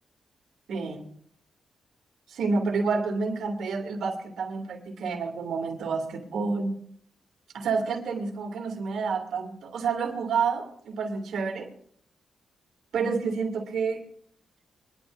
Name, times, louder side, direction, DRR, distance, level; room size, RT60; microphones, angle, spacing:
voice 1, 0.7-1.0 2.3-6.7 7.5-11.7 12.9-14.0, right 4 dB, 80° right, 2 dB, 2.6 m, -29 dB
23.5 x 11.5 x 2.6 m, 0.65 s
cardioid pair, 105°, 0 cm